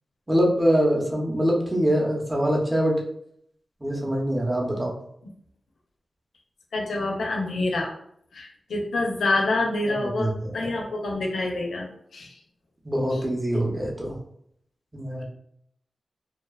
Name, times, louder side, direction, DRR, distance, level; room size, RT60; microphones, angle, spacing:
voice 1, 0.3-3.0 3.8-4.9 10.0-10.8 12.8-14.2 14.9-15.2, equal, 15° right, -2 dB, 0.6 m, -24 dB
voice 2, 6.7-7.9 8.3-11.9 12.1-12.4 13.1-13.2, left 2 dB, 85° left, 1 dB, 0.4 m, -27 dB
2.7 x 2.1 x 2.2 m, 0.70 s
wide cardioid pair, 100°, 0 cm